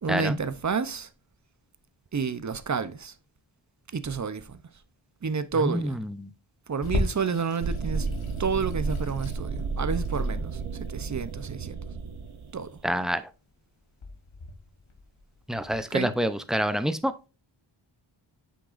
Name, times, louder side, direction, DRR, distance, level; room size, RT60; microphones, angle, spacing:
voice 1, 0.0-1.1 2.1-3.1 3.9-4.6 5.2-6.0 6.7-8.1 8.4-11.8 12.5-12.7 15.9-16.1, right 5 dB, 35° right, 0.7 m, -30 dB
voice 2, 5.6-6.3 12.8-13.2 15.5-17.3, equal, ahead, 0.6 m, -27 dB
Water tap faucet / Sink (filling or washing), 6.8-15.8, left 2 dB, 90° left, 1.5 m, -37 dB
sound 1, 7.6-12.7, right 4 dB, 85° right, 0.9 m, -32 dB
8.1 x 6.2 x 2.5 m
wide cardioid pair, 90°, 48 cm